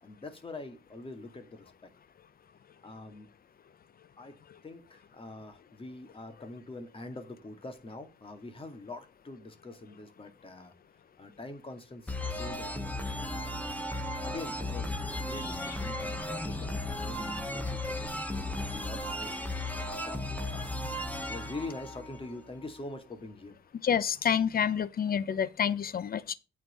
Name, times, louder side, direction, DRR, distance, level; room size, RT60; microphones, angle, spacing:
voice 1, 0.0-1.7 2.8-3.3 4.2-10.7 11.2-13.9 14.2-20.7 21.2-23.6, left 2 dB, 25° left, 2.3 m, -45 dB
sound 1, 12.1-22.7, left 1 dB, 10° left, 1.7 m, -35 dB
voice 2, 23.8-26.3, left 8 dB, 50° left, 1.0 m, -28 dB
9.0 x 4.6 x 7.1 m
cardioid pair, 90°, 20 cm